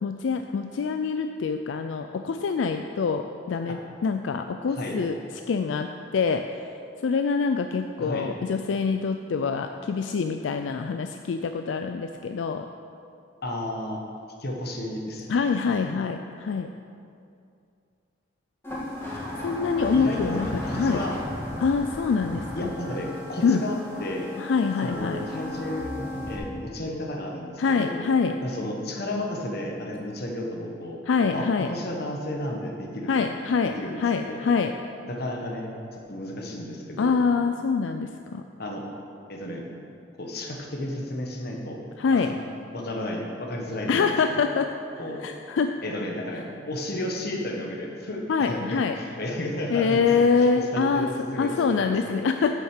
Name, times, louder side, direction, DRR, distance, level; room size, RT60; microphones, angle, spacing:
voice 1, 0.0-5.2 5.5-5.9 6.1-6.5 7.0-12.7 15.3-16.7 19.4-20.5 20.8-21.0 21.6-22.7 23.4-23.6 24.4-25.3 27.6-28.4 31.1-31.7 33.1-34.7 37.0-38.4 42.0-42.3 43.9-44.7 45.2-45.8 48.3-48.9 49.7-51.1 51.4-52.5, left 5 dB, 90° left, 7 dB, 0.4 m, -25 dB
voice 2, 4.7-5.0 8.0-8.3 13.4-14.0 14.4-15.9 19.8-21.1 22.5-24.3 24.8-25.9 26.3-28.0 28.4-31.0 31.3-33.4 33.6-34.4 35.1-35.7 36.1-37.2 38.6-38.8 39.3-39.6 40.2-41.8 42.1-42.4 42.7-44.5 45.0-45.2 45.8-52.3, left 1 dB, 60° left, 1 dB, 1.3 m, -33 dB
sound 1, 18.6-26.4, left 1 dB, 15° left, 2.1 m, -34 dB
7.6 x 6.4 x 6.5 m, 2.5 s
head